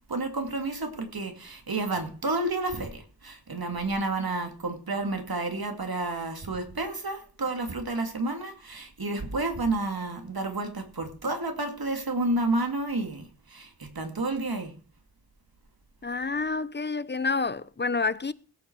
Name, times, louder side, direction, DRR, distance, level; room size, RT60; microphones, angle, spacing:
voice 1, 0.1-14.7, right 2 dB, 70° right, 2.5 m, -30 dB
voice 2, 16.0-18.3, left 4 dB, 30° left, 0.7 m, -28 dB
17.0 x 7.3 x 4.7 m
wide cardioid pair, 60°, 38 cm